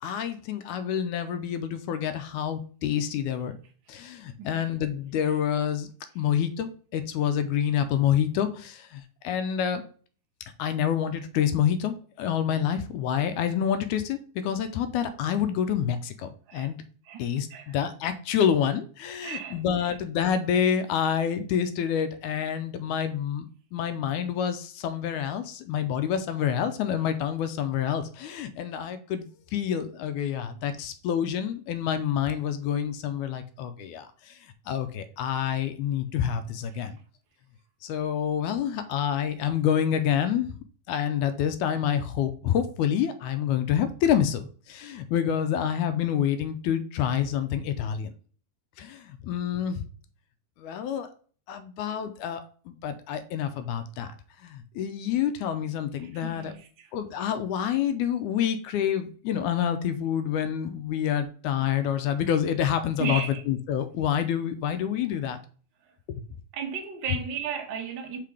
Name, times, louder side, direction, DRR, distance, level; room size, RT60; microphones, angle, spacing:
voice 1, 0.0-3.6 3.9-5.9 6.2-9.9 10.6-16.8 17.2-29.3 29.5-34.4 34.7-37.0 37.8-40.5 40.9-48.1 48.8-49.8 50.6-51.1 51.5-54.1 54.4-56.5 56.9-65.4, left 9 dB, 80° left, 2.0 m, -27 dB
voice 2, 17.0-17.8 19.2-20.0 36.7-36.8 56.0-56.9 63.0-63.4 66.5-68.2, right 6 dB, 75° right, 1.0 m, -35 dB
5.8 x 3.7 x 4.8 m
omnidirectional pair, 3.7 m